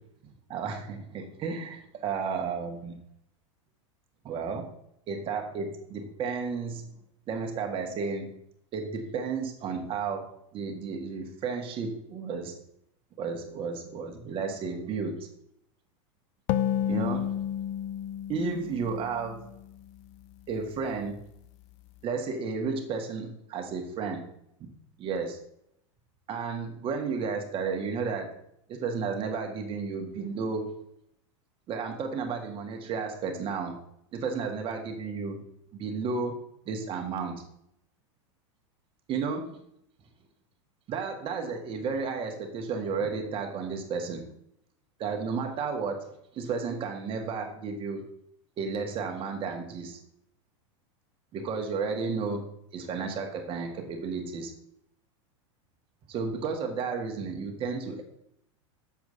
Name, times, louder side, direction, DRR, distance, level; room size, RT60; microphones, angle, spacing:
voice 1, 0.5-3.0 4.2-4.7 5.1-7.0 7.3-8.3 8.7-12.5 13.2-15.3 16.9-17.3 18.3-19.5 20.5-21.2 22.0-24.3 25.0-25.4 26.3-28.3 28.7-30.7 31.7-33.8 34.1-35.4 35.7-37.4 39.1-39.6 40.9-44.3 45.0-48.1 48.6-50.0 51.3-52.5 52.7-54.5 56.1-58.0, right 5 dB, 35° right, 4 dB, 1.7 m, -33 dB
sound 1, 16.5-20.0, left 10 dB, 45° left, 0.4 m, -31 dB
7.3 x 4.6 x 6.7 m, 0.74 s
supercardioid pair, 125°, 16 cm